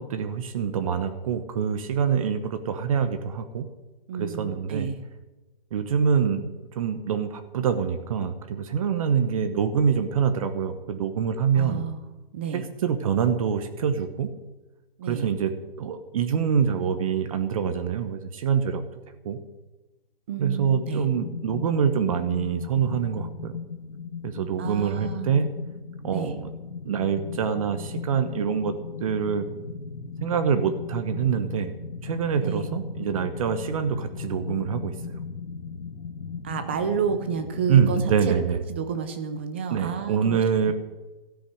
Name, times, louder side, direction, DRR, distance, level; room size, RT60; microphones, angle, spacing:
voice 1, 0.0-3.7 4.1-4.9 5.7-6.5 6.7-11.8 12.5-14.3 15.1-15.5 15.8-18.8 19.2-19.4 20.4-23.6 24.2-25.5 26.0-26.5 26.8-28.7 29.0-29.5 30.2-31.7 32.0-34.9 37.7-38.6 39.7-40.7, right 7 dB, 35° right, 9 dB, 1.0 m, -25 dB
voice 2, 4.1-5.0 11.5-12.0 12.3-12.6 15.0-15.3 20.3-21.1 24.6-25.3 26.1-26.4 32.4-32.7 36.4-38.0 38.3-38.4 38.7-40.7, right 6 dB, 10° right, 8 dB, 0.4 m, -30 dB
sound 1, 20.6-37.8, left 6 dB, 80° left, 1.6 m, -38 dB
14.0 x 7.5 x 10.0 m, 1.1 s
hypercardioid pair, 155°, 30 cm